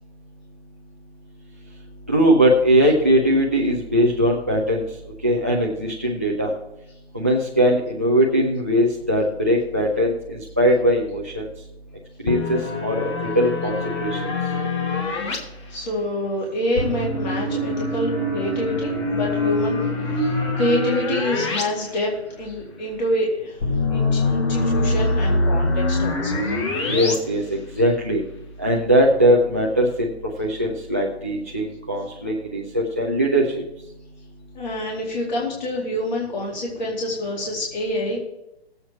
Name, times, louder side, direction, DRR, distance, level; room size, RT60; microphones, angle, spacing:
voice 1, 2.1-4.8 5.2-6.5 7.1-11.4 12.2-13.1 13.3-13.7 14.0-14.2 26.9-28.2 28.6-30.1 30.4-33.4, equal, 15° right, -1 dB, 0.4 m, -20 dB
sound 1, 12.3-15.4 16.8-21.6 21.9-22.0 23.6-27.2, left 2 dB, 25° left, 1.6 m, -24 dB
voice 2, 15.7-23.6 23.9-26.6 34.5-38.2, left 1 dB, 45° left, -3 dB, 2.5 m, -27 dB
17.5 x 7.9 x 4.4 m, 0.91 s
hypercardioid pair, 165°, 32 cm